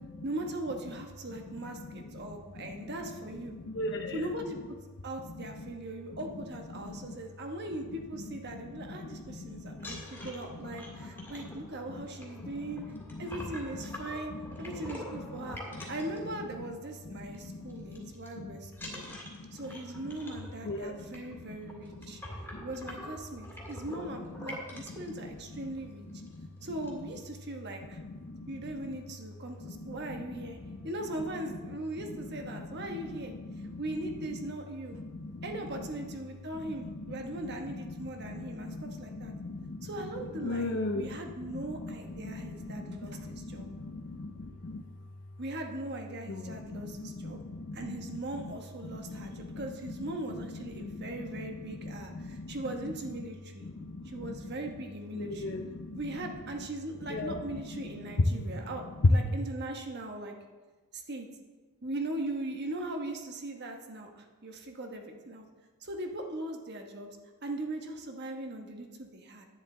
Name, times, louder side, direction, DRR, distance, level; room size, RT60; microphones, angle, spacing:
voice 1, 0.2-3.5 4.1-4.8 5.0-12.8 13.2-14.3 14.6-15.6 15.9-19.1 19.5-22.2 22.6-26.1 26.6-28.0 28.5-30.6 30.8-35.0 35.4-39.3 39.8-43.7 45.4-47.4 47.7-53.7 54.0-55.6 55.9-60.3 60.9-61.3 61.8-65.4 65.8-67.1 67.4-69.5, right 1 dB, 50° right, 3 dB, 1.2 m, -39 dB
voice 2, 3.7-4.2 6.8-7.1 9.0-10.3 11.0-11.1 12.4-12.5 15.4-15.5 17.1-18.5 18.8-19.5 20.6-21.0 26.3-26.5 28.2-28.5 29.6-29.7 30.1-30.2 30.6-30.8 32.5-32.7 33.5-33.7 35.0-35.5 36.6-37.2 37.7-37.8 38.2-39.9 40.4-41.2 41.8-41.9 42.2-44.8 46.3-48.0 48.9-49.6 50.8-51.4 51.8-52.5 53.7-54.3 55.1-56.0 57.1-57.4 58.4-58.5, left 2 dB, 55° left, 2 dB, 0.7 m, -39 dB
sound 1, 9.7-16.9 17.2-17.4 17.7-18.3 18.7-25.1 25.8-25.9 26.2-26.4 26.6-27.2, left 1 dB, 10° left, 2.0 m, -45 dB
10.5 x 9.9 x 3.8 m, 1.3 s
head